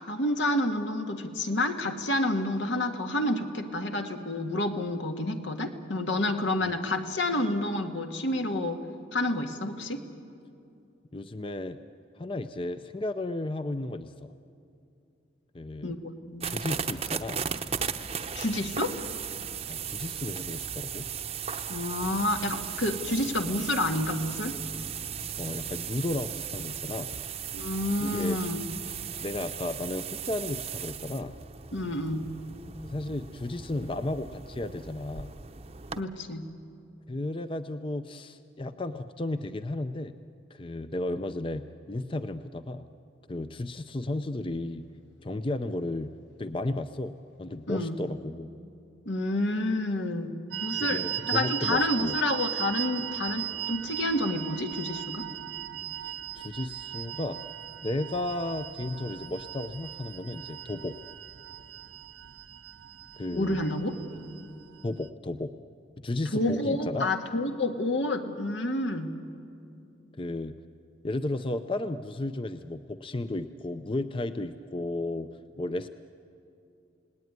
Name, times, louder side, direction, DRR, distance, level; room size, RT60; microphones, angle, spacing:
voice 1, 0.0-8.8 9.1-10.0 15.8-16.6 18.3-18.9 21.7-24.6 27.5-28.6 31.7-32.3 36.0-36.5 47.7-48.0 49.1-55.3 63.3-64.0 66.3-69.2, left 1 dB, 80° left, 5 dB, 1.9 m, -29 dB
voice 2, 11.1-11.8 12.2-14.3 15.5-15.9 16.4-17.4 19.7-21.1 25.4-27.1 28.0-28.4 29.2-31.3 32.8-35.3 37.1-40.1 40.5-42.9 43.3-44.8 45.2-46.1 46.4-48.5 50.8-52.2 56.0-57.4 57.8-61.0 63.2-63.6 64.8-65.5 66.0-67.1 70.2-70.5 71.0-75.3 75.6-75.9, left 2 dB, 30° left, 10 dB, 0.5 m, -34 dB
sound 1, 16.4-36.0, right 7 dB, 35° right, 0.8 m, -37 dB
sound 2, 50.5-65.1, right 12 dB, 65° right, 0.8 m, -37 dB
29.0 x 18.5 x 9.5 m, 2.6 s
head